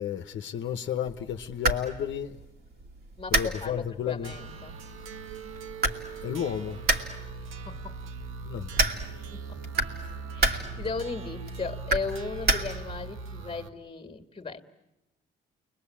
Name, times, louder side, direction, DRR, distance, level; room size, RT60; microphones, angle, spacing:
voice 1, 0.0-2.4 3.3-4.3 6.2-6.8 8.4-8.7 10.0-10.2, left 9 dB, 70° left, 1.1 m, -32 dB
sound 1, 1.1-13.1, right 2 dB, 50° right, 2.6 m, -32 dB
voice 2, 3.2-4.7 7.6-7.9 9.2-9.6 10.2-14.6, left 4 dB, 25° left, 2.1 m, -36 dB
sound 2, 4.2-13.7, right 4 dB, 85° right, 1.5 m, -41 dB
29.5 x 22.0 x 8.6 m
cardioid pair, 90°, 20 cm